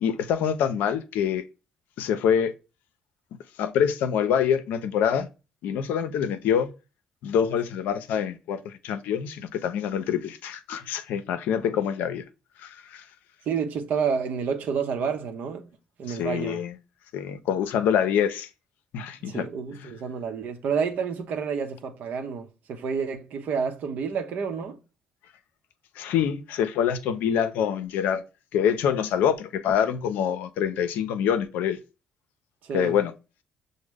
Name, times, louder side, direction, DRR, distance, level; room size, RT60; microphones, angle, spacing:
voice 1, 0.0-1.4 2.0-2.5 3.6-5.3 5.6-6.7 7.2-12.2 12.6-13.0 16.1-16.8 17.1-18.5 18.9-19.4 26.0-28.2 28.5-31.8 32.7-33.1, left 8 dB, 80° left, 0.5 m, -25 dB
voice 2, 13.5-15.7 16.0-16.6 19.2-24.8 32.6-33.0, right 6 dB, 70° right, 0.7 m, -29 dB
6.1 x 2.1 x 3.4 m
supercardioid pair, 60°, 3 cm